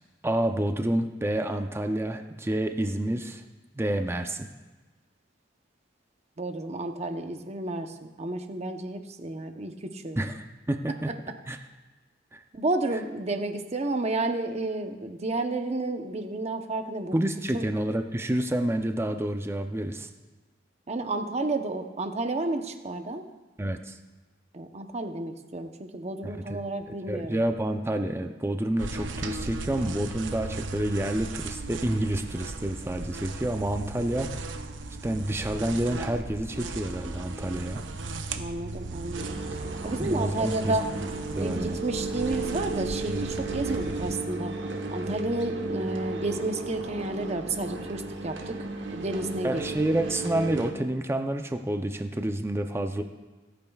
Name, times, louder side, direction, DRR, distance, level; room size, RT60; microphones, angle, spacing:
voice 1, 0.2-3.4 3.7-4.5 10.2-11.1 11.5-11.6 12.3-12.4 17.1-20.1 23.6-24.0 26.2-26.6 27.1-34.6 35.0-37.8 40.0-40.8 41.4-41.8 49.4-53.0, right 1 dB, 15° right, 6 dB, 0.5 m, -29 dB
voice 2, 6.4-10.2 12.5-17.2 17.5-17.6 20.9-23.3 24.5-27.4 38.3-40.9 41.4-44.5 44.9-48.6 48.9-49.7, right 2 dB, 35° right, 6 dB, 0.8 m, -31 dB
sound 1, 28.8-44.1, right 3 dB, 85° right, 0.7 m, -37 dB
sound 2, 39.1-50.7, right 3 dB, 70° right, 1.1 m, -34 dB
25.5 x 8.8 x 2.3 m, 1.2 s
head